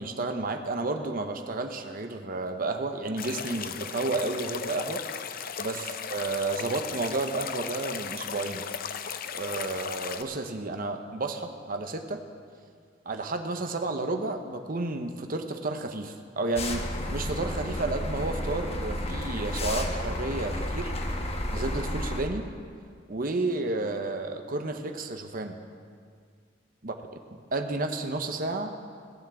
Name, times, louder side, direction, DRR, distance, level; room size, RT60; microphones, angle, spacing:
voice 1, 0.0-5.0 5.6-8.6 9.3-12.2 13.0-16.8 17.1-20.9 21.5-22.5 23.1-25.6 26.8-26.9 27.5-28.8, right 2 dB, 50° right, 5 dB, 0.9 m, -31 dB
sound 1, 3.2-10.2, left 7 dB, 50° left, 0.6 m, -36 dB
sound 2, 16.6-22.2, left 1 dB, 35° left, 1.2 m, -32 dB
17.0 x 7.3 x 7.6 m, 2.1 s
head